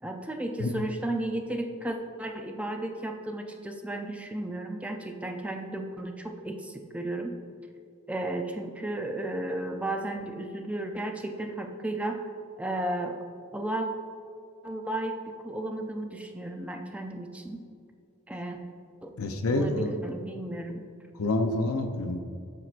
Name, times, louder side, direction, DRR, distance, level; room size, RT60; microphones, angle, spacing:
voice 1, 0.0-7.4 8.1-12.3 12.6-13.2 13.5-13.9 14.6-17.6 18.3-18.6 19.0-19.1 19.5-20.9, right 1 dB, 5° right, 4 dB, 0.4 m, -34 dB
voice 2, 19.2-19.9 21.1-22.2, left 2 dB, 65° left, 4 dB, 0.5 m, -27 dB
12.0 x 4.5 x 2.5 m, 2.3 s
head